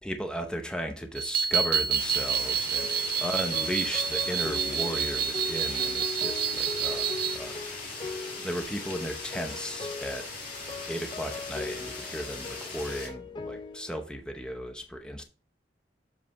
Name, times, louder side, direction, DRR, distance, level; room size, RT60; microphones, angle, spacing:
voice 1, 0.0-10.3 10.9-15.2, equal, 5° left, 0.7 m, -36 dB
sound 1, 1.2-7.4, right 8 dB, 60° right, 0.4 m, -28 dB
sound 2, 2.0-13.1, left 3 dB, 50° left, 2.2 m, -40 dB
sound 3, 2.8-14.0, left 3 dB, 25° left, 0.4 m, -40 dB
7.5 x 3.2 x 4.6 m
head